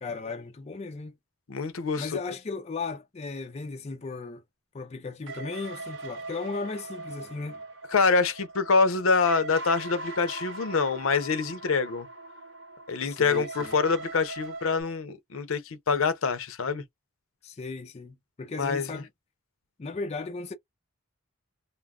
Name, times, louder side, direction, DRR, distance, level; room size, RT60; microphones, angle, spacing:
voice 1, 0.0-1.1 2.0-4.4 4.7-7.6 13.0-13.8 17.4-19.1 19.8-20.5, left 3 dB, 30° left, 0.4 m, -36 dB
voice 2, 1.5-2.1 7.9-12.1 12.9-16.8 18.6-18.9, left 4 dB, 70° left, 0.6 m, -25 dB
sound 1, 5.3-14.8, right 2 dB, 60° right, 0.9 m, -41 dB
2.3 x 2.0 x 3.5 m
head